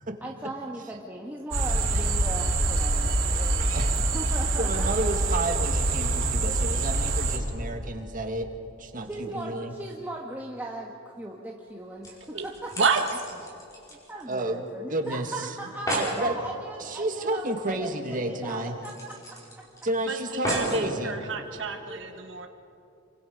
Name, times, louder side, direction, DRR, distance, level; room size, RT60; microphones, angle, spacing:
voice 1, 0.2-3.8 4.1-4.9 9.1-12.7 13.7-19.4 21.7-22.2, right 2 dB, 10° right, -2 dB, 1.3 m, -38 dB
sound 1, 1.5-7.4, right 2 dB, 90° right, 3.3 m, -25 dB
voice 2, 4.6-8.5 8.8-9.7 14.3-14.6 14.9-15.5 15.9-16.4 16.8-18.8 19.8-21.2, right 1 dB, 45° right, 4 dB, 1.8 m, -31 dB
sound 2, 11.7-11.8 12.0-14.7 15.0-15.1 15.4-15.5 15.7-16.2 17.7-17.8 18.1-18.2 18.8-19.8 20.4-20.9 21.6-21.7, equal, 20° left, 5.3 m, -33 dB
voice 3, 20.1-22.5, right 5 dB, 70° right, 4 dB, 1.3 m, -29 dB
27.0 x 24.5 x 5.3 m, 2.6 s
head